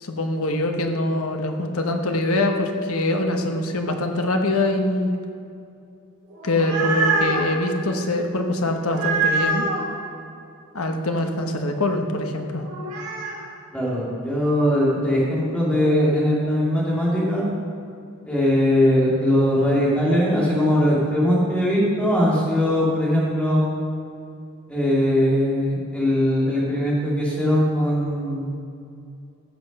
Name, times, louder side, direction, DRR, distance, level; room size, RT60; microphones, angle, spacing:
voice 1, 0.0-5.2 6.4-9.7 10.7-12.6, left 2 dB, 70° left, 4 dB, 1.1 m, -23 dB
sound 1, 6.3-7.5 8.9-9.8 12.6-13.4, right 3 dB, 60° right, 3.1 m, -24 dB
voice 2, 13.7-17.5 18.3-23.7 24.7-28.6, equal, 5° left, -6 dB, 2.4 m, -20 dB
14.5 x 6.2 x 5.3 m, 2.5 s
head